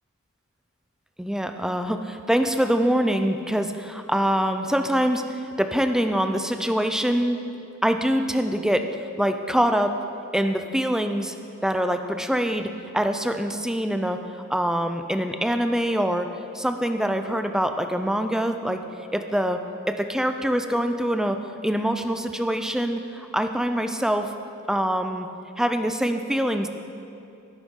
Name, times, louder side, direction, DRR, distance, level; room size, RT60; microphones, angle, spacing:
voice 1, 1.2-7.4 7.8-8.9 9.2-10.0 10.3-11.3 11.6-14.2 14.5-16.3 16.5-18.8 19.1-19.6 19.9-21.4 21.6-24.3 24.7-25.3 25.6-26.7, equal, 5° right, 7 dB, 0.5 m, -24 dB
16.0 x 9.2 x 3.8 m, 2.6 s
head